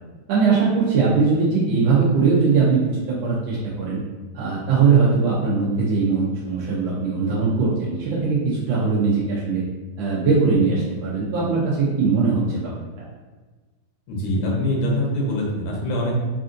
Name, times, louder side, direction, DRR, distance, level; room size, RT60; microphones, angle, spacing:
voice 1, 0.3-4.0 4.3-9.6 10.0-12.7, right 4 dB, 75° right, -6 dB, 1.3 m, -20 dB
voice 2, 14.1-16.1, left 1 dB, 90° left, -2 dB, 1.7 m, -23 dB
4.2 x 2.6 x 2.4 m, 1.3 s
omnidirectional pair, 2.3 m